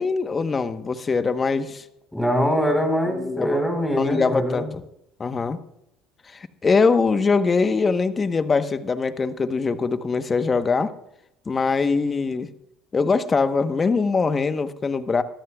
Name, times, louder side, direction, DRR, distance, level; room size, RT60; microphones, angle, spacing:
voice 1, 0.0-1.8 3.1-3.6 4.0-4.8 5.2-5.6 6.3-10.9 11.5-12.5 12.9-15.2, left 4 dB, 25° left, 11 dB, 1.1 m, -22 dB
voice 2, 2.1-4.7, equal, 5° left, 4 dB, 4.2 m, -23 dB
24.0 x 13.5 x 2.4 m, 0.79 s
supercardioid pair, 90°, 0 cm